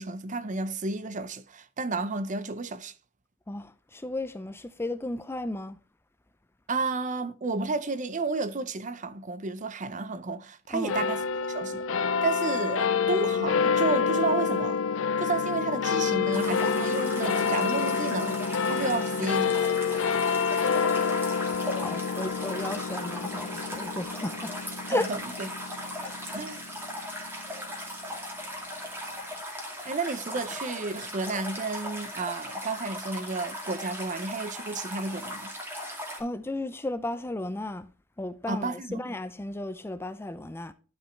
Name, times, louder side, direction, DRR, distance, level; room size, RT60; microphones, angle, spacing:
voice 1, 0.0-2.9 6.7-11.8 12.2-14.8 15.2-19.7 24.9-25.5 26.3-26.6 29.8-35.5 38.5-39.0, right 3 dB, 40° right, 0.7 m, -32 dB
voice 2, 3.5-5.8 10.7-11.0 20.4-21.1 21.7-24.5 24.9-25.1 26.0-26.1 36.2-37.9 38.2-40.7, left 2 dB, 10° left, 0.4 m, -34 dB
sound 1, 10.9-27.6, left 6 dB, 75° left, 0.5 m, -28 dB
sound 2, 16.3-36.2, equal, 10° right, 2.3 m, -38 dB
11.5 x 5.3 x 3.2 m
head